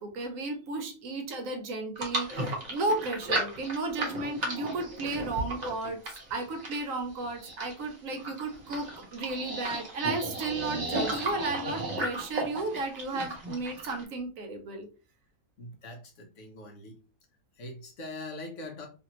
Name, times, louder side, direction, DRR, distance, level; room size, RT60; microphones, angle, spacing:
voice 1, 0.0-14.9, right 3 dB, 65° right, 4 dB, 1.0 m, -34 dB
sound 1, 1.9-14.0, right 1 dB, 35° right, 0.7 m, -34 dB
voice 2, 15.6-17.0 17.6-18.9, left 2 dB, 65° left, 3 dB, 0.9 m, -42 dB
2.6 x 2.5 x 2.9 m, 0.35 s
omnidirectional pair, 1.6 m